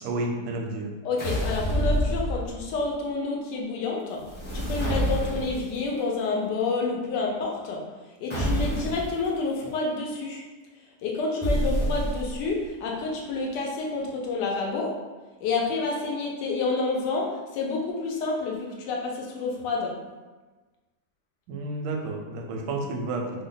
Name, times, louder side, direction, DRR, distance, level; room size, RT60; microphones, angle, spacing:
voice 1, 0.0-0.9 21.5-23.4, right 2 dB, 85° right, 1 dB, 1.2 m, -31 dB
voice 2, 1.0-4.2 4.5-7.8 8.2-10.4 11.0-14.9 15.4-20.0, left 3 dB, 80° left, -1 dB, 1.3 m, -29 dB
sound 1, 1.2-2.8 4.2-5.8 8.3-9.1 11.4-12.5, equal, 10° left, 0.6 m, -27 dB
3.3 x 2.1 x 3.8 m, 1.3 s
omnidirectional pair, 1.8 m